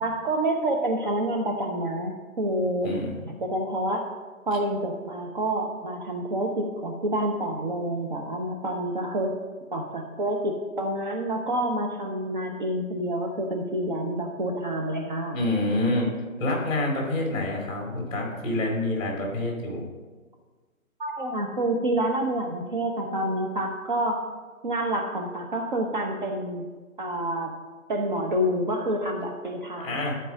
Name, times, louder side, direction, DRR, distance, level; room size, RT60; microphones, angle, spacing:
voice 1, 0.0-2.9 3.2-4.0 4.5-9.4 9.7-15.5 21.0-24.2 24.6-26.7 27.0-27.5 27.9-30.1, right 1 dB, 35° right, 1 dB, 0.7 m, -28 dB
voice 2, 2.8-3.2 15.3-16.1 16.4-19.9 29.8-30.1, left 2 dB, 15° left, -1 dB, 2.2 m, -27 dB
10.5 x 4.6 x 6.2 m, 1.4 s
figure-of-eight pair, 150°, 42 cm